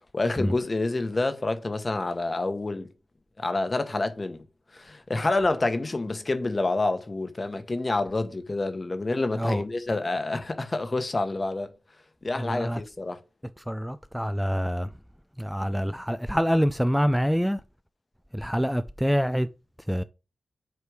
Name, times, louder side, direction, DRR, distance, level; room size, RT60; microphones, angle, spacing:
voice 1, 0.1-2.9 3.4-4.4 4.7-11.7 12.2-13.2, left 2 dB, 35° left, 1.1 m, -28 dB
voice 2, 12.4-12.8 13.7-14.9 15.4-17.6 18.3-19.5 19.9-20.0, equal, ahead, 0.3 m, -26 dB
7.9 x 3.2 x 4.8 m
cardioid pair, 55°, 0 cm